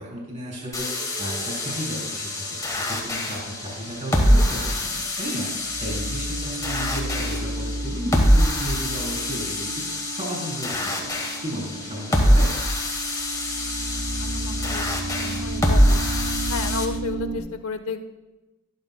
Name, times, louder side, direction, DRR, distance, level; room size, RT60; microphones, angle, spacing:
voice 1, 0.0-12.5, equal, 35° right, -5 dB, 3.4 m, -34 dB
sound 1, 0.7-16.8, equal, 15° left, 1.2 m, -24 dB
sound 2, 0.8-17.4, right 1 dB, 75° right, 2.5 m, -34 dB
voice 2, 13.8-16.0 16.5-18.0, left 4 dB, 65° left, 10 dB, 0.7 m, -33 dB
13.0 x 12.0 x 2.2 m, 1.1 s
head